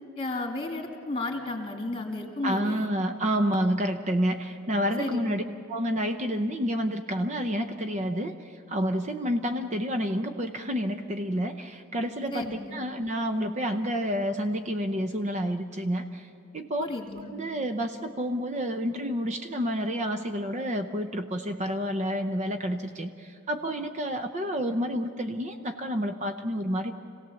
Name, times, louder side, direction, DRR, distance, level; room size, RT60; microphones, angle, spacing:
voice 1, 0.2-2.9 5.0-5.4 12.3-12.8 16.8-17.3, left 2 dB, 25° left, 2 dB, 2.3 m, -33 dB
voice 2, 2.4-5.4 5.7-16.9 17.2-26.9, equal, 30° right, 7 dB, 0.7 m, -29 dB
27.0 x 17.0 x 7.0 m, 2.6 s
head